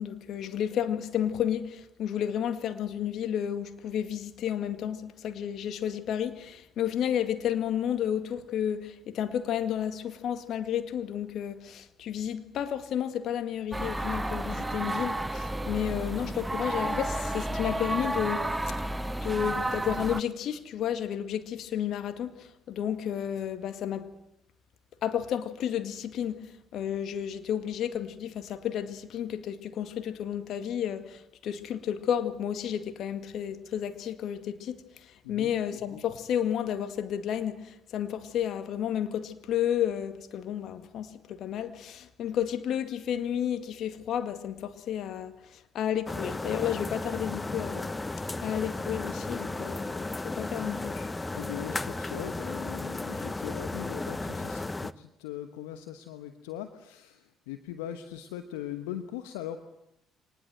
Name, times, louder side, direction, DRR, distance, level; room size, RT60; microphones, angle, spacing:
voice 1, 0.0-18.7 19.2-24.1 25.0-26.4 26.7-34.8 35.3-45.3 45.7-47.9 48.4-51.1, left 9 dB, 60° left, 2.1 m, -32 dB
sound 1, 13.7-20.2, right 1 dB, 10° right, 1.1 m, -31 dB
sound 2, 46.1-54.9, left 2 dB, 20° left, 1.0 m, -34 dB
voice 2, 51.3-59.7, left 11 dB, 80° left, 1.1 m, -40 dB
24.5 x 20.0 x 7.9 m
hypercardioid pair, 50°, 0 cm